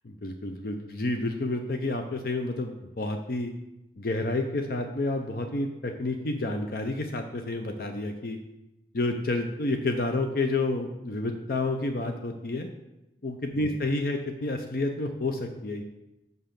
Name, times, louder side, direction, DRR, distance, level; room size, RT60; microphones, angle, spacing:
voice 1, 0.0-3.5 4.0-8.4 8.9-12.7 13.2-15.8, left 2 dB, 55° left, 5 dB, 0.6 m, -30 dB
5.8 x 5.4 x 6.7 m, 0.94 s
head